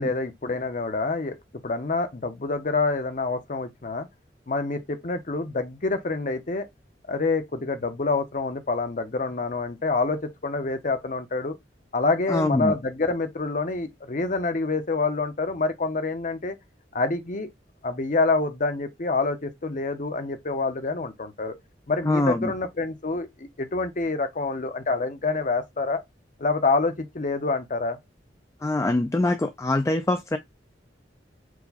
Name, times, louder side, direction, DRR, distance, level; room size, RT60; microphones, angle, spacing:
voice 1, 0.0-1.4 1.6-4.1 4.5-6.7 7.1-11.5 11.9-16.6 16.9-17.5 17.8-21.5 21.9-26.0 26.4-28.0, left 3 dB, 45° left, 0.8 m, -27 dB
voice 2, 12.3-12.7 22.1-22.5 28.6-30.4, left 2 dB, 15° left, 0.3 m, -24 dB
4.7 x 2.3 x 4.0 m
head